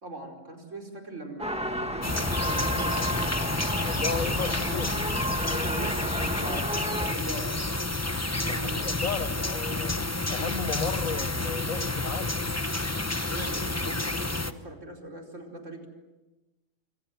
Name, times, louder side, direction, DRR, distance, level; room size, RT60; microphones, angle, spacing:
voice 1, 0.0-3.3 4.2-4.9 5.5-7.5 8.5-8.9 13.1-15.9, right 2 dB, 65° right, 5.2 m, -41 dB
sound 1, 1.4-7.1, equal, 5° right, 1.6 m, -32 dB
sound 2, 1.6-13.9, left 1 dB, 55° left, 3.6 m, -49 dB
sound 3, 2.0-14.5, left 2 dB, 15° left, 0.9 m, -29 dB
voice 2, 3.9-4.9 8.4-10.0 10.3-12.4, left 6 dB, 80° left, 1.7 m, -34 dB
26.5 x 26.0 x 7.7 m
omnidirectional pair, 1.4 m